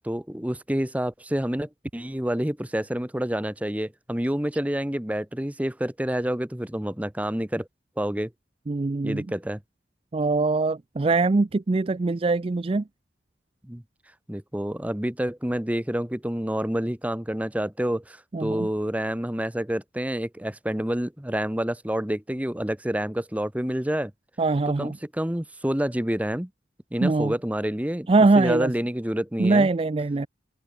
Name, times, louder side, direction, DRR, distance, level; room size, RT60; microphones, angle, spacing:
voice 1, 0.0-7.7 8.0-8.3 9.0-9.6 13.7-13.8 14.3-24.1 24.7-26.5 26.9-28.1 28.4-29.7, equal, 10° right, 0.9 m, -28 dB
voice 2, 8.7-9.2 10.1-12.8 18.3-18.7 24.4-25.0 27.0-27.3 28.1-28.7 29.4-30.3, right 3 dB, 30° right, 0.4 m, -22 dB
open air
head